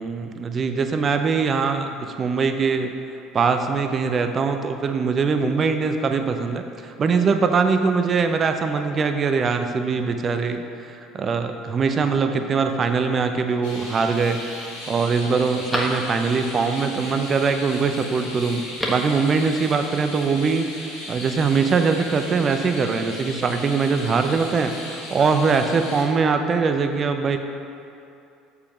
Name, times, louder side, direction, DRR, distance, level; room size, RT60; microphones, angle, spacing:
voice 1, 0.0-2.9 3.3-18.6 18.9-27.4, right 5 dB, 35° right, 7 dB, 0.6 m, -22 dB
Telephone, 13.4-14.0 14.5-14.6 15.0-16.5 18.5-19.2 19.5-19.6, left 1 dB, 10° left, 1.5 m, -32 dB
sound 1, 13.6-26.0, left 1 dB, 75° left, 1.8 m, -37 dB
6.8 x 5.0 x 5.9 m, 2.6 s
hypercardioid pair, 65°, 0 cm